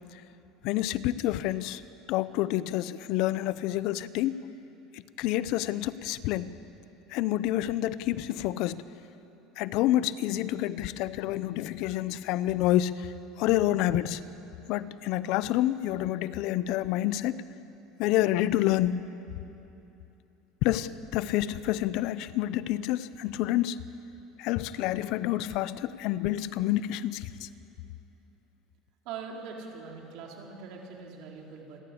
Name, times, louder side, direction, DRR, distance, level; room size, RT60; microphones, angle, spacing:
voice 1, 0.6-1.8 2.1-4.4 5.2-6.5 7.1-8.8 9.6-12.9 13.4-14.2 14.7-17.4 18.0-19.1 20.6-23.8 24.4-27.5, left 14 dB, 65° left, 16 dB, 0.7 m, -28 dB
voice 2, 29.0-31.8, right 5 dB, 65° right, 0 dB, 4.1 m, -42 dB
28.5 x 12.0 x 8.5 m, 2.9 s
supercardioid pair, 120°, 0 cm